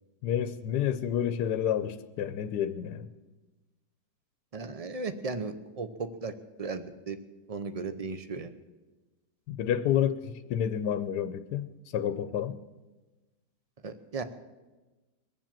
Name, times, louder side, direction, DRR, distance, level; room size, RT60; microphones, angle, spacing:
voice 1, 0.2-3.1 9.5-11.7 11.9-12.6, left 9 dB, 80° left, 11 dB, 1.2 m, -29 dB
voice 2, 4.5-6.3 6.6-7.2 7.5-8.5 13.8-14.2, right 4 dB, 45° right, 10 dB, 0.4 m, -36 dB
21.5 x 7.3 x 7.5 m, 1.2 s
omnidirectional pair, 1.8 m